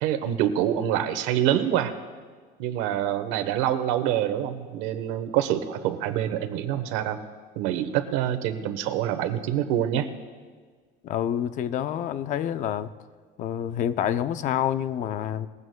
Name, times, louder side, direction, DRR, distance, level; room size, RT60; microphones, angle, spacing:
voice 1, 0.0-1.9 2.6-7.2 7.6-10.1, right 11 dB, 80° right, 10 dB, 1.1 m, -26 dB
voice 2, 11.0-12.9 13.4-15.5, left 10 dB, 40° left, 12 dB, 0.5 m, -27 dB
20.5 x 15.5 x 2.2 m, 1.5 s
cardioid pair, 170°, 20 cm